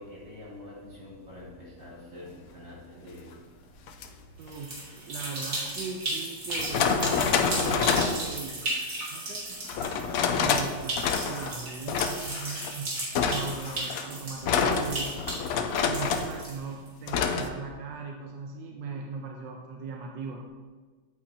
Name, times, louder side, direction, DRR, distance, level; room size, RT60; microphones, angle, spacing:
voice 1, 0.0-3.3 4.1-4.2, left 1 dB, 30° right, -8 dB, 2.8 m, -45 dB
sound 1, 3.9-4.1 5.7-5.8 6.5-8.2 9.7-10.7 11.0-11.5 11.9-12.7 13.2-16.4 17.1-17.5, left 6 dB, 70° left, 0.8 m, -27 dB
sound 2, 4.4-16.9, right 1 dB, 50° right, 2.5 m, -35 dB
voice 2, 4.4-8.7 9.1-15.2 15.8-20.5, right 4 dB, 80° right, 1 dB, 1.4 m, -39 dB
8.6 x 8.4 x 2.8 m, 1.4 s
omnidirectional pair, 2.0 m